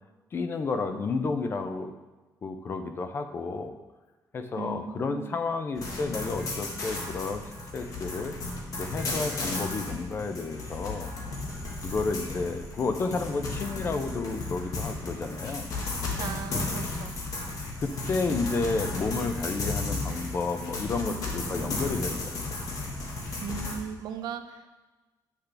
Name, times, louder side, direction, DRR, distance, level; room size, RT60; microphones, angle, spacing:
voice 1, 0.3-1.9 2.4-3.8 4.3-7.4 7.7-8.4 8.8-11.1 11.8-15.7 16.5-16.6 17.8-22.4, left 4 dB, 30° left, 8 dB, 0.5 m, -31 dB
voice 2, 4.6-5.3 16.2-17.2 21.0-21.8 23.4-24.8, right 7 dB, 80° right, 8 dB, 0.5 m, -38 dB
sound 1, 5.7-23.7, left 2 dB, 55° left, 1.4 m, -34 dB
8.1 x 5.9 x 3.4 m, 1.2 s
cardioid pair, 170°, 7 cm